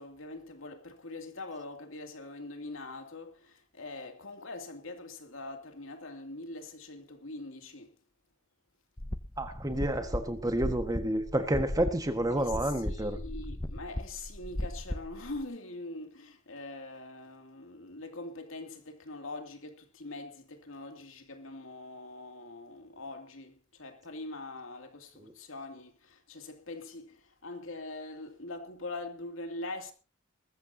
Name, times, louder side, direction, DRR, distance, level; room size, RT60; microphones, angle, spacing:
voice 1, 0.0-7.9 12.3-29.9, left 2 dB, 70° left, 2.7 m, -43 dB
sound 1, 9.0-15.4, left 1 dB, 15° left, 0.7 m, -37 dB
voice 2, 9.4-13.2, right 1 dB, 15° right, 1.6 m, -30 dB
20.5 x 15.0 x 2.8 m
head